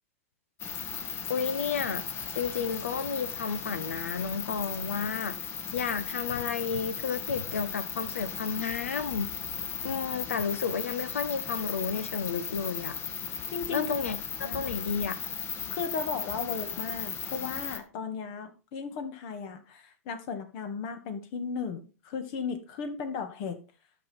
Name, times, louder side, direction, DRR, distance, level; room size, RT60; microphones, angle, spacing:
sound 1, 0.6-17.8, left 7 dB, 30° left, 1.6 m, -36 dB
voice 1, 1.3-2.0 2.3-5.4 5.7-9.3 9.8-13.0 13.7-15.2, left 6 dB, 75° left, 1.1 m, -32 dB
voice 2, 13.5-13.9 14.4-14.6 15.7-23.6, left 5 dB, 50° left, 2.0 m, -36 dB
12.0 x 6.0 x 4.4 m
figure-of-eight pair, 95°, 7 cm